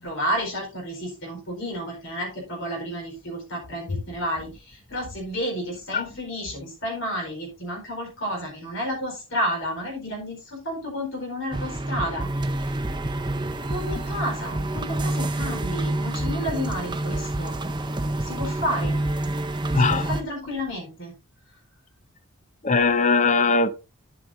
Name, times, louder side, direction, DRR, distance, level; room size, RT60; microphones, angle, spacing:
voice 1, 0.0-12.8 13.6-17.5 18.2-19.0 19.7-21.1, equal, 60° left, 4.5 m, -31 dB
sound 1, 11.5-20.2, right 1 dB, 20° right, 0.6 m, -27 dB
voice 2, 19.7-20.0 22.6-23.7, left 4 dB, 35° left, 0.6 m, -20 dB
10.5 x 7.9 x 2.7 m
head